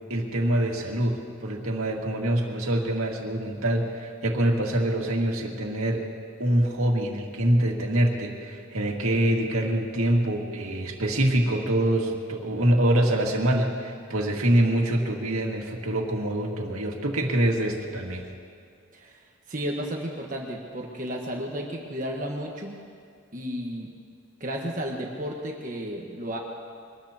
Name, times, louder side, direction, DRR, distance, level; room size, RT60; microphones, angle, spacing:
voice 1, 0.1-6.1 6.4-18.3, right 1 dB, 90° right, 0 dB, 2.1 m, -25 dB
voice 2, 19.5-22.8 23.3-23.9 24.4-26.4, equal, 40° right, -1 dB, 1.4 m, -33 dB
24.0 x 20.0 x 2.9 m, 2.2 s
head